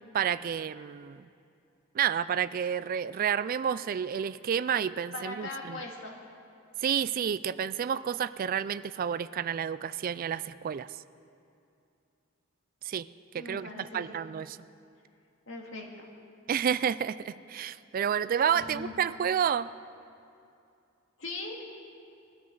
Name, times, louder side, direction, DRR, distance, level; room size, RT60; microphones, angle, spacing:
voice 1, 0.1-1.3 1.9-5.8 6.8-10.9 12.8-13.1 13.3-14.6 16.5-19.7, right 8 dB, 45° right, 15 dB, 0.3 m, -30 dB
voice 2, 5.1-6.1 13.4-14.2 15.5-16.1 18.5-18.9 21.2-21.6, left 2 dB, 65° left, 0 dB, 2.1 m, -40 dB
21.5 x 13.5 x 3.9 m, 2.6 s
head